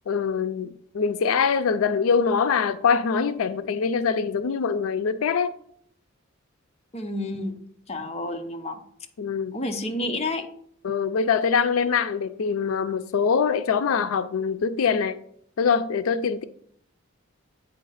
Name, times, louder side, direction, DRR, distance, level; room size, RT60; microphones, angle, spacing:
voice 1, 0.1-5.5 9.2-9.6 10.8-15.2 15.6-16.4, left 6 dB, 90° left, 0.4 m, -23 dB
voice 2, 6.9-7.6 7.9-8.8 9.5-10.5, left 1 dB, 30° left, 0.7 m, -30 dB
8.6 x 3.3 x 5.6 m
head